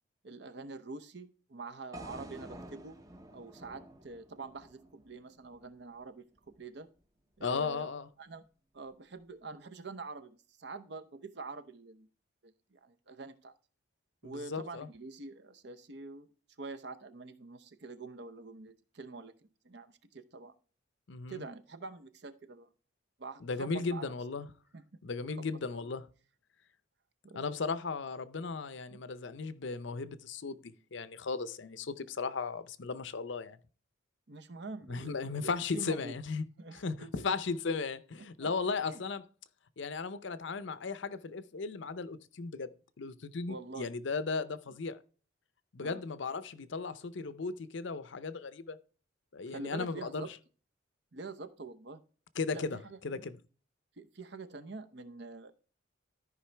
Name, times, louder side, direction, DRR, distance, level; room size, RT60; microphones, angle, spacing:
voice 1, 0.2-3.0 3.3-6.2 6.6-6.9 7.4-7.9 8.2-8.4 8.7-12.1 12.4-13.5 14.2-16.3 16.6-19.3 19.6-20.5 21.3-22.7 23.2-24.0 24.7-24.8 25.4-25.5 27.2-27.4 28.9-29.0 34.3-36.2 36.6-37.3 38.4-38.5 38.8-39.0 43.5-43.9 45.8-46.0 49.5-50.3 51.1-52.0 52.5-53.0 54.0-55.5, right 3 dB, 55° right, 0.7 m, -45 dB
sound 1, 1.9-6.1, right 1 dB, 15° right, 0.7 m, -50 dB
voice 2, 7.4-8.1 14.2-14.9 21.1-21.4 23.4-24.5 25.0-26.0 27.3-33.6 34.9-36.5 36.7-39.3 39.8-42.7 43.0-45.0 45.7-48.8 49.3-50.3 52.4-53.4, left 4 dB, 65° left, 0.6 m, -36 dB
13.0 x 5.2 x 3.3 m
head